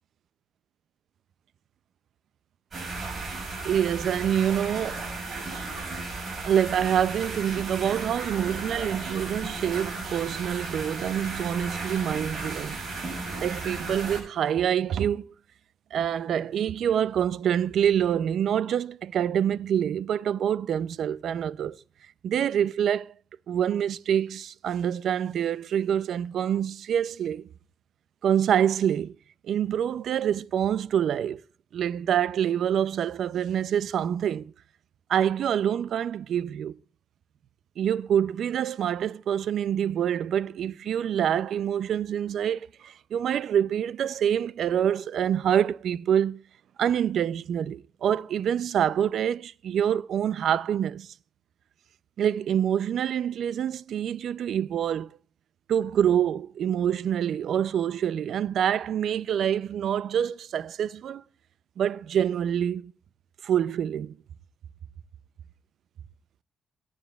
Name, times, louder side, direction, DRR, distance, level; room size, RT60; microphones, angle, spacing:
sound 1, 2.7-14.2, right 3 dB, 40° right, 5.7 m, -35 dB
voice 1, 3.6-5.0 6.4-12.8 13.3-15.3 15.9-21.8 22.2-23.1 23.5-27.5 28.2-29.2 29.4-31.4 31.7-34.5 35.1-36.8 37.8-46.4 46.8-51.1 52.2-55.1 55.7-61.2 61.8-62.9 63.4-64.2, right 9 dB, 65° right, 0.4 m, -26 dB
18.0 x 9.5 x 2.3 m
cardioid pair, 90°, 0 cm